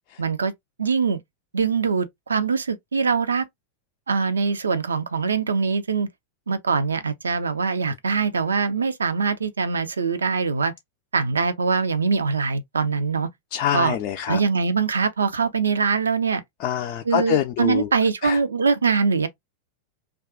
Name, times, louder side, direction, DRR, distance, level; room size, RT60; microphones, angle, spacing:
voice 1, 0.2-0.5 0.8-1.2 1.5-3.4 4.1-6.1 6.5-10.7 11.1-13.3 13.7-14.0 14.3-16.4 17.0-19.3, right 5 dB, 75° right, 0.4 m, -23 dB
voice 2, 13.5-14.4 16.6-17.9 18.2-18.4, left 10 dB, 40° left, 0.4 m, -25 dB
2.4 x 2.3 x 3.5 m
figure-of-eight pair, 90°, 0 cm